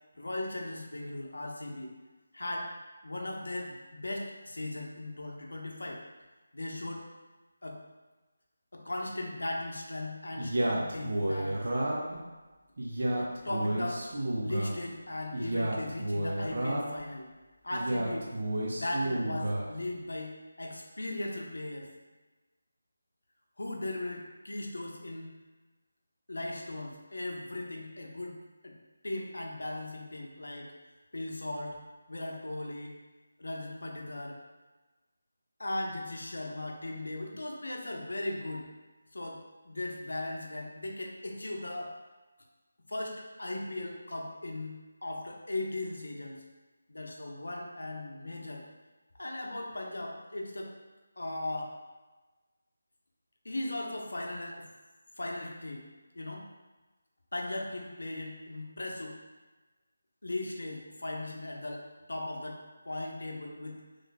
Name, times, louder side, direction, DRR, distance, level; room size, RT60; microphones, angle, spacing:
voice 1, 0.1-1.9 2.3-2.7 3.0-6.0 6.5-7.0 7.6-7.8 8.7-11.6 13.0-14.1 14.4-17.3 17.6-18.3 18.7-21.9 23.6-25.3 26.3-28.4 28.6-28.8 29.0-30.7 31.1-31.8 32.1-32.9 33.4-34.4 35.6-38.7 39.1-41.9 42.9-46.4 46.9-48.6 49.1-50.7 51.2-51.7 53.4-54.7 55.2-55.9 56.1-56.5 57.3-59.2 60.2-62.6 62.8-63.8, left 1 dB, 90° left, 0 dB, 0.7 m, -38 dB
Male speech man speaking, 10.4-12.2 12.8-14.8 15.3-17.0 17.7-19.7, right 1 dB, 55° right, 0.6 m, -31 dB
3.1 x 2.1 x 3.9 m, 1.2 s
figure-of-eight pair, 175°, 0 cm